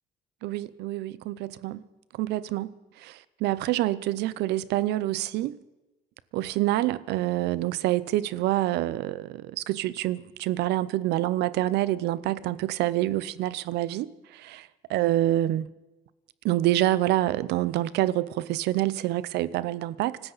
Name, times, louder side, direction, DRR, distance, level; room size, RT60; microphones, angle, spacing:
voice 1, 0.4-1.8 2.1-5.6 6.3-15.7 16.4-20.2, right 15 dB, 85° right, 0.7 m, -27 dB
25.0 x 13.5 x 4.1 m
cardioid pair, 110°, 17 cm